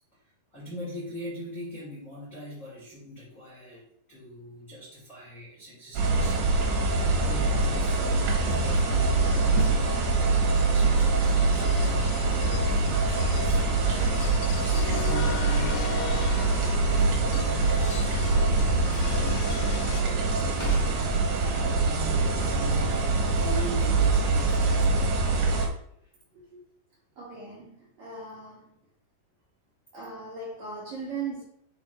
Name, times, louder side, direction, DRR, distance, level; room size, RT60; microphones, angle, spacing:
voice 1, 0.5-9.7 10.3-15.8 16.4-18.6 19.1-20.4 22.4-25.9, left 1 dB, 25° left, 1.8 m, -42 dB
sound 1, 5.9-25.7, right 3 dB, 75° right, 3.5 m, -24 dB
sound 2, 6.6-20.0, left 9 dB, 85° left, 2.4 m, -34 dB
Crackle, 15.2-21.2, right 2 dB, 50° left, 1.0 m, -44 dB
voice 2, 27.2-28.8 29.9-31.4, right 4 dB, 50° right, 2.3 m, -38 dB
7.9 x 3.4 x 4.3 m
omnidirectional pair, 5.2 m